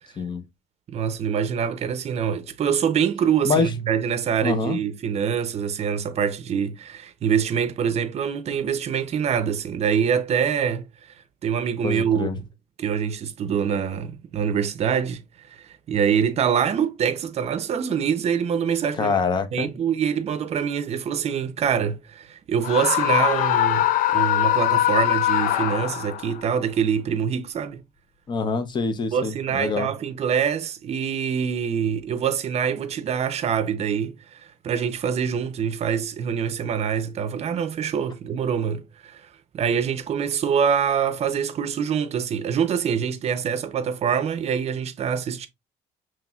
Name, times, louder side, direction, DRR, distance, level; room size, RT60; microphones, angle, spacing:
voice 1, 0.9-10.9 11.4-12.5 12.8-15.2 15.5-19.2 19.5-27.8 29.1-39.2 39.5-45.5, right 7 dB, 45° right, 0.6 m, -25 dB
voice 2, 4.4-4.8 11.8-12.4 19.0-19.7 28.3-29.9, left 5 dB, 30° left, 0.7 m, -25 dB
Screaming, 22.6-26.3, left 13 dB, 70° left, 0.4 m, -21 dB
5.5 x 3.1 x 2.3 m
cardioid pair, 120°, 15 cm